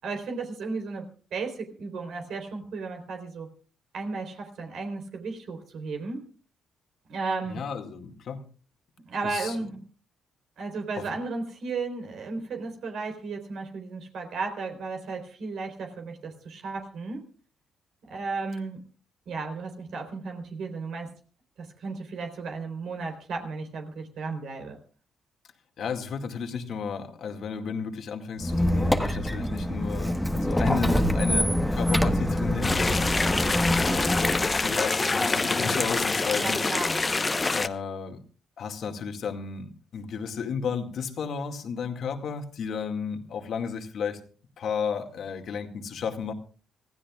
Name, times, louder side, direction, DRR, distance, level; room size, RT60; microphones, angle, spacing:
voice 1, 0.0-1.1 1.3-3.5 3.9-6.2 7.1-7.6 9.0-9.8 10.6-17.2 18.1-18.8 19.3-21.1 21.6-24.8 36.3-37.0, right 4 dB, 70° right, 3 dB, 3.8 m, -34 dB
voice 2, 7.5-8.4 9.2-9.6 10.9-11.0 25.8-33.1 33.7-36.7 37.5-38.2 38.6-44.2 44.6-46.3, left 6 dB, 65° left, 5 dB, 2.2 m, -33 dB
Squeak, 28.4-34.8, equal, 5° left, 1.3 m, -25 dB
sound 1, 32.6-37.7, left 3 dB, 25° left, 1.0 m, -26 dB
25.5 x 15.5 x 2.4 m, 0.39 s
cardioid pair, 90°, 0 cm